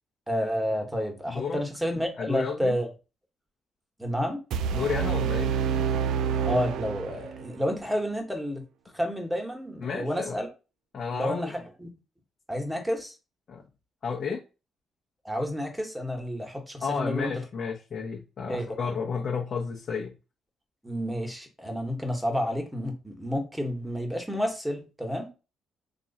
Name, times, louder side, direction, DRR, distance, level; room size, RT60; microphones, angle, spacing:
voice 1, 0.3-2.9 4.0-4.4 6.4-8.6 8.9-10.5 11.1-11.9 12.5-13.1 15.2-17.3 18.5-18.7 20.8-25.3, equal, 5° right, 4 dB, 1.2 m, -30 dB
voice 2, 1.3-1.6 2.2-2.8 4.7-5.5 9.8-10.4 10.9-11.5 13.5-13.6 14.0-14.4 16.8-20.1, left 5 dB, 55° left, -2 dB, 0.9 m, -31 dB
sound 1, 4.5-7.5, right 7 dB, 85° right, 0.3 m, -27 dB
3.0 x 2.4 x 4.0 m, 0.30 s
cardioid pair, 90°, 0 cm